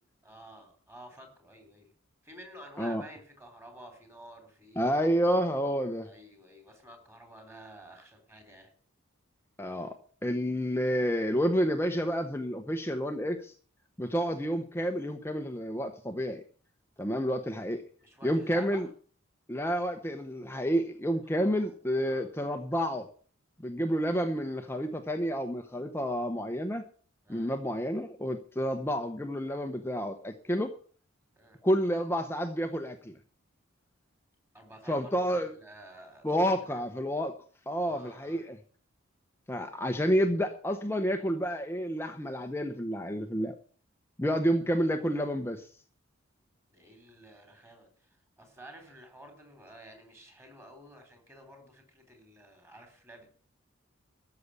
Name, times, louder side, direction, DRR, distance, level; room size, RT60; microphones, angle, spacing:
voice 1, 0.2-1.9 2.2-4.9 6.0-8.7 18.0-18.9 21.4-22.3 27.2-27.5 31.4-31.6 34.5-36.9 37.8-38.5 46.7-53.3, right 1 dB, 10° right, 5 dB, 3.9 m, -51 dB
voice 2, 4.8-6.1 9.6-10.0 10.2-13.5 14.0-16.4 17.0-17.8 18.2-18.9 19.5-23.1 23.6-26.8 27.3-30.7 31.6-33.1 34.9-35.5 36.2-37.4 37.7-38.6 39.5-43.5 44.2-45.7, equal, 10° left, 6 dB, 0.8 m, -29 dB
13.5 x 6.8 x 8.2 m, 0.43 s
head